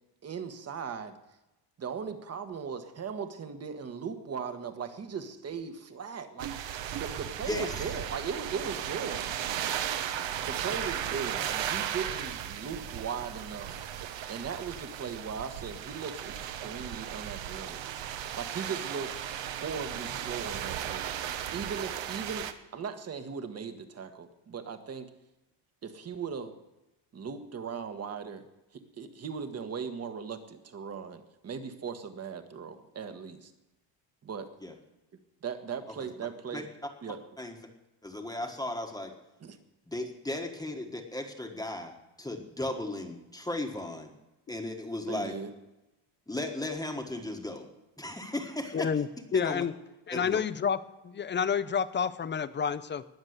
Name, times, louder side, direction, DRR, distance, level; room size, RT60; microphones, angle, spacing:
voice 1, 0.2-1.1 1.8-6.5 7.0-9.3 10.5-13.8 14.3-17.8 18.4-19.1 19.5-21.1 21.5-25.1 25.8-26.6 27.1-28.4 28.7-33.5 34.2-34.5 35.4-36.7 37.0-37.2 39.4-39.6 45.1-45.5, right 6 dB, 30° right, 9 dB, 1.4 m, -38 dB
sound 1, 6.4-22.5, right 10 dB, 65° right, 1.2 m, -36 dB
voice 2, 38.0-39.1 39.9-44.1 44.5-45.3 46.3-47.7 48.0-48.9 49.3-49.6 50.1-50.4, left 1 dB, 10° left, 2 dB, 1.4 m, -36 dB
voice 3, 48.7-49.1 49.3-49.7 50.1-50.8 51.0-53.0, left 7 dB, 25° left, 14 dB, 0.5 m, -29 dB
20.0 x 7.3 x 8.0 m, 0.99 s
cardioid pair, 155°, 48 cm